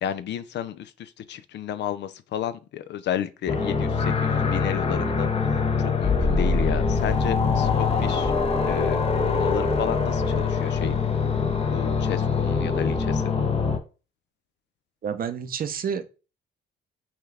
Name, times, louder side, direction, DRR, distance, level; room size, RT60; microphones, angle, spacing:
voice 1, 0.0-5.3 5.8-8.3 8.6-10.9 11.7-13.3, left 10 dB, 65° left, 0.4 m, -32 dB
sound 1, 3.5-13.8, left 5 dB, 30° left, 0.7 m, -23 dB
voice 2, 15.0-16.0, right 7 dB, 45° right, 0.6 m, -29 dB
5.6 x 2.3 x 3.3 m
cardioid pair, 90°, 20 cm